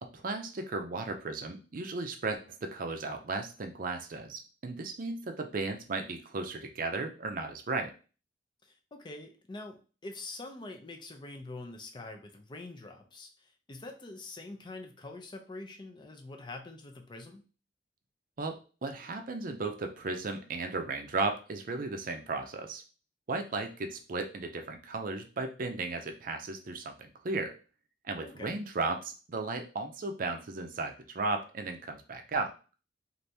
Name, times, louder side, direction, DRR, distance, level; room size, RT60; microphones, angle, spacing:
voice 1, 0.0-7.9 18.4-22.8 23.3-27.6 28.0-32.5, right 3 dB, 50° right, 5 dB, 0.5 m, -35 dB
voice 2, 8.6-17.5 28.2-28.6, left 2 dB, 25° left, 4 dB, 0.5 m, -45 dB
3.3 x 2.6 x 2.7 m, 0.35 s
head